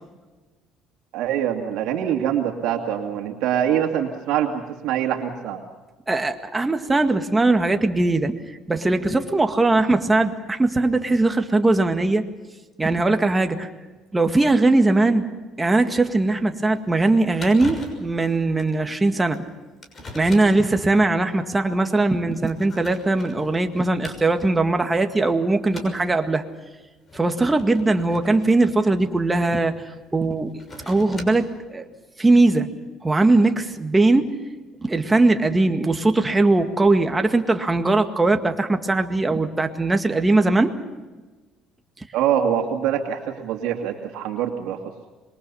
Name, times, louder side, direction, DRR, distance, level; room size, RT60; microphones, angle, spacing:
voice 1, 1.1-5.6 42.1-44.8, right 9 dB, 75° right, 2 dB, 2.5 m, -24 dB
voice 2, 6.1-12.2 12.8-13.7 14.1-15.3 15.6-19.4 20.1-26.4 27.1-29.8 30.1-31.9 32.2-32.7 33.0-34.3 34.8-40.8 42.0-42.1, right 2 dB, 15° right, 6 dB, 1.9 m, -20 dB
sound 1, 16.3-16.4 16.8-16.9 17.1-17.2 17.4-18.1 18.6-18.7 19.3-19.4 19.8-20.7 21.4-21.6 22.2-24.5 24.9-25.3 25.7-26.1 27.0-29.5 30.4-31.6, left 2 dB, 30° left, 6.2 m, -40 dB
26.0 x 23.0 x 5.6 m, 1.2 s
cardioid pair, 130°, 0 cm